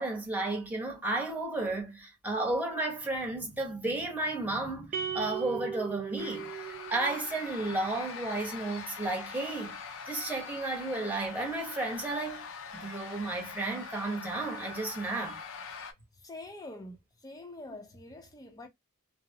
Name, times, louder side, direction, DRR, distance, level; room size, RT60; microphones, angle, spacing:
voice 1, 0.0-6.5 6.9-9.8 10.1-12.5 12.7-15.4, right 2 dB, 10° right, 0.9 m, -33 dB
sound 1, 4.9-7.4, right 7 dB, 35° right, 0.6 m, -37 dB
sound 2, 6.2-15.9, left 5 dB, 60° left, 0.5 m, -43 dB
voice 2, 16.2-17.0 17.2-18.7, left 2 dB, 15° left, 0.6 m, -45 dB
2.8 x 2.0 x 2.7 m
head